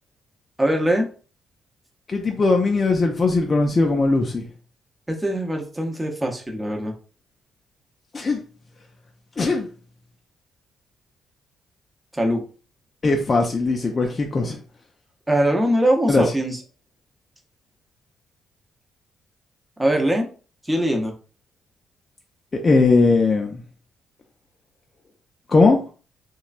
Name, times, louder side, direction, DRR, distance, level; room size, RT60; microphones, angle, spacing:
voice 1, 0.6-1.1 5.1-6.9 12.1-12.4 15.3-16.6 19.8-20.3 20.6-21.1, right 1 dB, 10° right, 0.7 m, -21 dB
voice 2, 2.1-4.4 8.1-8.4 9.4-9.7 13.0-14.6 16.1-16.3 22.5-23.6 25.5-25.8, left 3 dB, 35° left, 0.4 m, -19 dB
2.9 x 2.2 x 2.5 m
cardioid pair, 90°, 0 cm